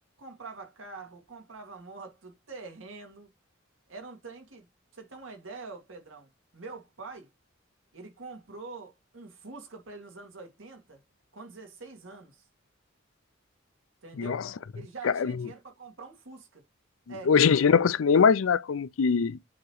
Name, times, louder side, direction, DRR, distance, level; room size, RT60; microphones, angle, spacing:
voice 1, 0.2-3.3 3.9-4.7 4.9-7.3 7.9-11.0 11.3-12.5 14.0-14.4 14.7-16.6 17.1-17.3, right 3 dB, 80° right, 2.1 m, -45 dB
voice 2, 14.2-14.5 15.0-15.5 17.3-19.4, left 6 dB, 85° left, 0.5 m, -22 dB
7.2 x 2.9 x 4.7 m
head